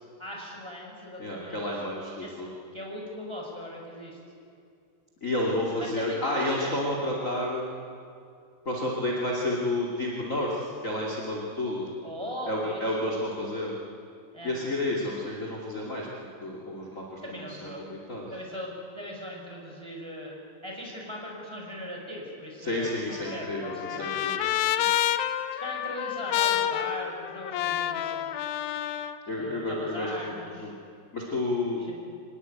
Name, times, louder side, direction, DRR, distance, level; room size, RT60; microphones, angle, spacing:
voice 1, 0.2-1.6 2.2-2.4 2.7-4.2 5.8-6.9 12.0-13.0 14.3-14.7 17.2-17.9 18.3-24.2 25.6-28.3 29.4-30.7 31.9-32.1, equal, 5° right, -2 dB, 5.1 m, -39 dB
voice 2, 1.2-2.5 5.2-7.7 8.6-11.9 12.5-13.7 14.4-16.1 16.4-18.3 22.6-24.5 24.8-24.9 29.3-30.3 30.6-30.7 31.1-31.8, left 1 dB, 25° left, -3 dB, 1.9 m, -30 dB
Trumpet, 22.9-29.2, left 11 dB, 85° left, 2.1 m, -29 dB
25.0 x 19.5 x 9.3 m, 2.4 s
omnidirectional pair, 5.2 m